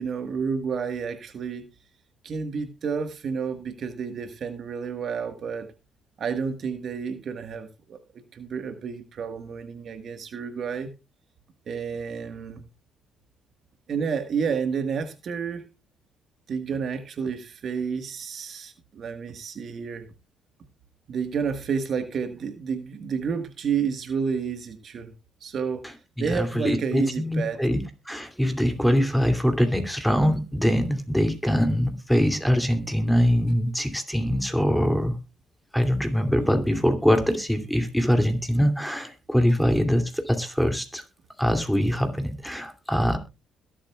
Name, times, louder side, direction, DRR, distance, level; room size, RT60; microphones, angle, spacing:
voice 1, 0.0-1.7 2.2-5.7 6.2-10.9 11.7-12.7 13.9-15.7 16.5-20.1 21.1-25.1 25.4-25.8 26.2-27.6 36.4-36.5, right 6 dB, 55° right, 7 dB, 1.5 m, -30 dB
voice 2, 26.2-27.8 28.1-35.1 35.7-41.0 41.4-43.2, equal, ahead, 6 dB, 2.6 m, -23 dB
21.5 x 7.7 x 2.3 m, 0.27 s
supercardioid pair, 60°, 0 cm